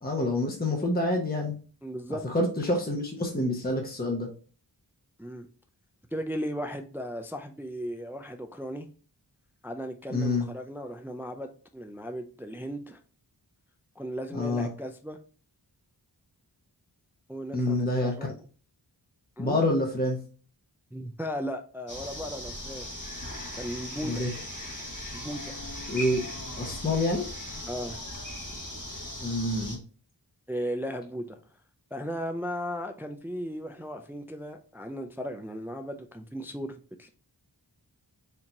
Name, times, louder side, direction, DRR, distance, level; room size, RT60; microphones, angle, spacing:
voice 1, 0.0-1.5 2.2-4.3 10.1-10.5 14.3-14.7 17.5-18.1 19.4-20.2 24.0-24.3 25.9-26.2 26.6-27.2 29.2-29.8, left 1 dB, 20° left, 1.0 m, -27 dB
voice 2, 1.8-2.2 5.2-5.5 6.1-8.9 9.6-13.0 14.0-15.2 17.3-18.3 19.4-19.6 20.9-22.9 23.5-24.2 25.1-25.5 27.7-28.0 30.5-31.4 31.9-37.1, equal, 5° right, 0.4 m, -36 dB
sound 1, 21.9-29.8, left 1 dB, 45° left, 1.3 m, -38 dB
4.5 x 2.8 x 3.8 m
wide cardioid pair, 45°, 43 cm